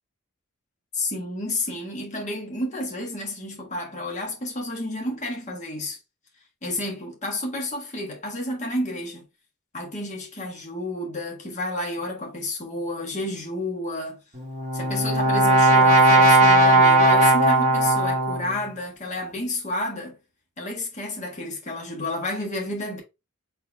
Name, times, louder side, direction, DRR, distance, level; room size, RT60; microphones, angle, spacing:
voice 1, 0.9-6.0 6.6-9.2 9.7-14.2 14.7-20.2 20.6-23.0, left 1 dB, 35° left, 1.4 m, -31 dB
Brass instrument, 14.4-18.6, right 2 dB, 30° right, 1.2 m, -17 dB
4.2 x 3.4 x 3.4 m
head